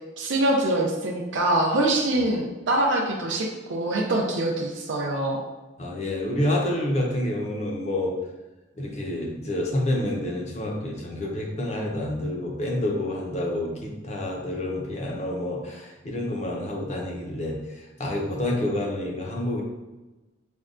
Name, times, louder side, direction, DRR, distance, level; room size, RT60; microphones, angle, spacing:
voice 1, 0.2-5.4, right 1 dB, 70° right, -2 dB, 0.4 m, -24 dB
voice 2, 5.8-8.1 8.8-19.6, left 1 dB, 35° left, -1 dB, 0.5 m, -28 dB
5.2 x 2.2 x 2.4 m, 1.1 s
head